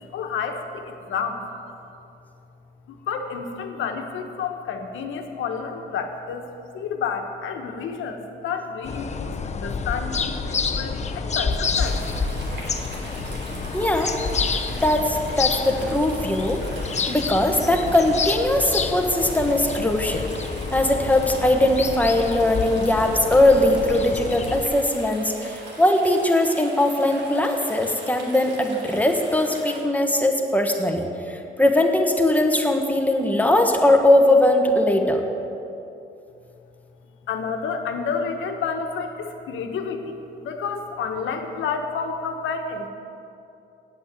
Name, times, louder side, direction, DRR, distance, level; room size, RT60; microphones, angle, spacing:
voice 1, 0.0-1.4 2.9-6.4 6.7-12.0 37.3-42.9, left 5 dB, 80° left, 5 dB, 1.2 m, -30 dB
sound 1, 8.8-24.7, left 4 dB, 35° left, 0.7 m, -28 dB
sound 2, 11.7-29.8, right 1 dB, 65° right, 2.8 m, -41 dB
voice 2, 13.7-14.1 14.6-16.6 17.1-20.3 20.7-35.2, left 1 dB, 10° left, 3 dB, 1.3 m, -20 dB
9.0 x 8.0 x 8.3 m, 2.7 s
cardioid pair, 90°, 20 cm